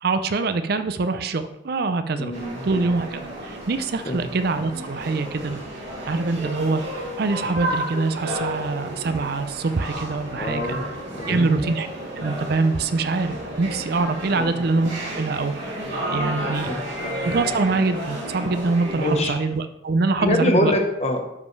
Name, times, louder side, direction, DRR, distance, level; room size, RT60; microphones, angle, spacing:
voice 1, 0.0-2.3 2.6-5.6 6.1-6.8 7.2-10.8 11.3-11.9 12.2-15.5 16.1-16.7 17.2-20.7, right 3 dB, 55° right, 10 dB, 0.5 m, -24 dB
voice 2, 2.2-2.6 4.0-4.2 10.4-11.7 14.4-14.6 16.6-16.9 18.9-19.3 20.2-21.4, left 1 dB, 35° left, 4 dB, 1.0 m, -25 dB
sound 1, 2.3-19.3, right 1 dB, 70° right, 2.6 m, -32 dB
12.0 x 5.3 x 3.2 m, 0.89 s
head